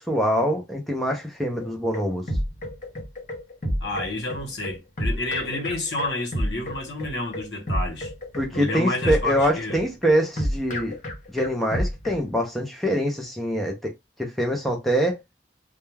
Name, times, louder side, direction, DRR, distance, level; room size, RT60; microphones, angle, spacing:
voice 1, 0.0-2.2 8.3-10.9 11.3-13.9 14.2-15.2, equal, ahead, 0.5 m, -24 dB
sound 1, 1.6-12.2, equal, 45° left, 0.7 m, -29 dB
voice 2, 3.8-8.1 8.5-9.8, left 2 dB, 70° left, 0.9 m, -30 dB
2.2 x 2.2 x 3.1 m
head